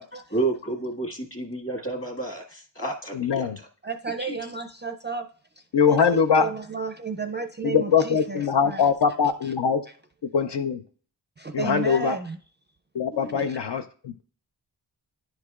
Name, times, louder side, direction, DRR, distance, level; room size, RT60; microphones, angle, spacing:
voice 1, 0.3-3.5 4.2-4.4, right 2 dB, 30° left, 1.7 m, -30 dB
voice 2, 3.1-3.6 5.7-6.5 7.6-9.9 10.3-10.8 11.5-12.2 12.9-14.2, left 6 dB, 65° left, 0.6 m, -22 dB
voice 3, 3.8-5.3 5.9-8.8 11.4-12.4, right 5 dB, 25° right, 0.4 m, -32 dB
10.5 x 4.8 x 2.4 m
wide cardioid pair, 45°, 45 cm